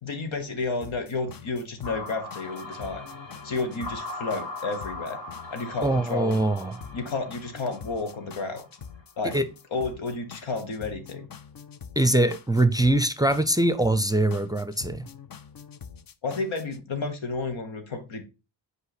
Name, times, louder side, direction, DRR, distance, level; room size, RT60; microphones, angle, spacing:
voice 1, 0.0-3.0 3.4-5.2 5.5-6.4 6.9-8.6 9.2-9.4 9.7-11.2 16.2-18.2, left 3 dB, 85° left, 1.3 m, -31 dB
sound 1, 0.8-16.8, left 7 dB, 50° left, 0.6 m, -45 dB
sound 2, 1.8-9.0, left 2 dB, 70° left, 2.4 m, -40 dB
voice 2, 5.8-6.7 9.3-9.5 12.0-15.0, right 1 dB, 10° right, 0.5 m, -23 dB
5.5 x 4.8 x 4.2 m
cardioid pair, 45°, 46 cm